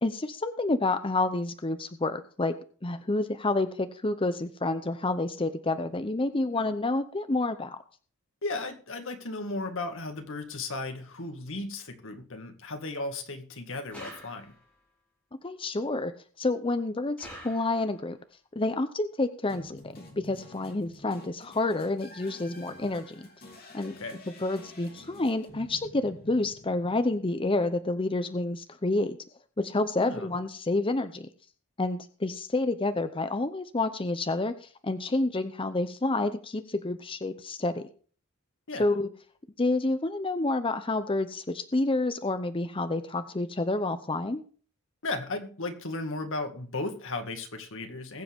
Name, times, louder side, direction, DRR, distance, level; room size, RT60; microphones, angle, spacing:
voice 1, 0.0-2.5 2.8-7.8 15.4-16.1 16.4-18.2 18.5-23.3 23.7-23.9 24.4-29.2 29.6-31.3 31.8-37.9 38.8-39.1 39.6-44.4, left 2 dB, 25° left, 10 dB, 0.7 m, -29 dB
voice 2, 8.4-14.5 23.8-24.2 30.0-30.3 38.7-38.9 45.0-48.2, left 2 dB, 60° left, 6 dB, 2.1 m, -35 dB
sound 1, 13.9-14.8 17.2-18.1, equal, 5° left, 5.0 m, -46 dB
sound 2, 19.5-27.7, left 2 dB, 45° left, 3.2 m, -50 dB
21.0 x 7.5 x 3.6 m, 0.42 s
head